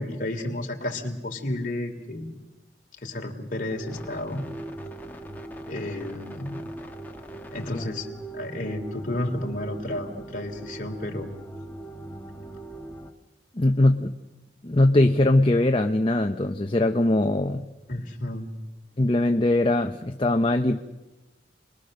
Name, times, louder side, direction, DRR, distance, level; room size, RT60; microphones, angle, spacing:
voice 1, 0.0-2.4 3.0-4.4 5.6-6.6 7.5-8.1 8.3-11.3 17.9-18.5, left 1 dB, 45° left, 2 dB, 3.0 m, -32 dB
sound 1, 3.7-13.1, right 2 dB, 10° left, 1.4 m, -40 dB
voice 2, 13.6-14.1 14.6-17.7 19.0-20.8, left 1 dB, 30° left, 4 dB, 0.7 m, -21 dB
30.0 x 21.5 x 6.5 m, 1.1 s
head